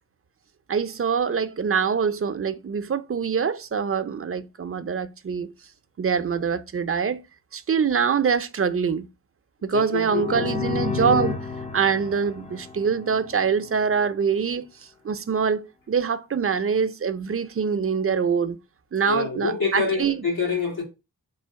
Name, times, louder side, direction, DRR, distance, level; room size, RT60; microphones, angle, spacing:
voice 1, 0.7-5.5 6.0-7.2 7.5-9.1 9.6-11.4 11.7-14.7 15.0-18.6 18.9-20.2, right 6 dB, 40° right, 0.5 m, -24 dB
voice 2, 9.7-10.5 10.9-11.1 19.0-20.8, left 5 dB, 85° left, 1.6 m, -27 dB
sound 1, 10.0-13.7, left 5 dB, 20° left, 0.4 m, -31 dB
3.8 x 2.4 x 4.6 m
cardioid pair, 45°, 36 cm